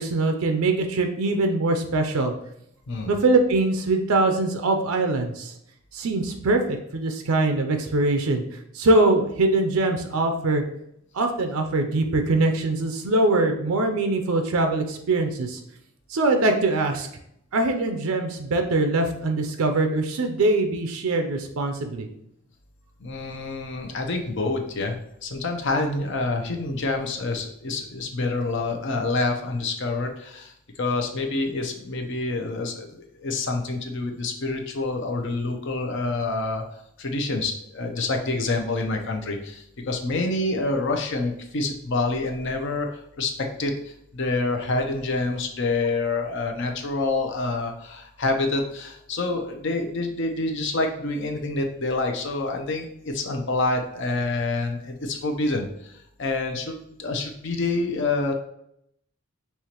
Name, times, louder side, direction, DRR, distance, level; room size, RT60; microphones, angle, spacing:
voice 1, 0.0-2.3 3.1-5.5 5.9-8.4 8.7-10.6 11.1-15.6 16.1-17.1 17.5-22.1, right 2 dB, 80° right, 5 dB, 0.5 m, -22 dB
voice 2, 23.0-30.5 30.8-36.6 37.0-43.3 43.6-55.9 56.2-58.3, left 3 dB, 55° left, 3 dB, 0.6 m, -27 dB
5.6 x 2.9 x 2.9 m, 0.74 s
head